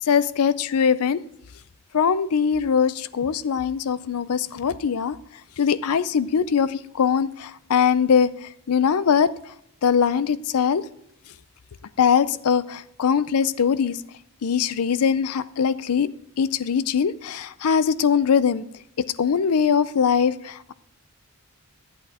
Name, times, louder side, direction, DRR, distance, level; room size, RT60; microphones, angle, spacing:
voice 1, 0.0-1.2 1.9-5.2 5.6-9.3 9.8-10.8 12.0-14.0 14.4-16.1 16.4-18.6 19.0-20.7, left 7 dB, 75° left, 17 dB, 0.5 m, -21 dB
11.5 x 8.4 x 3.6 m, 0.72 s
head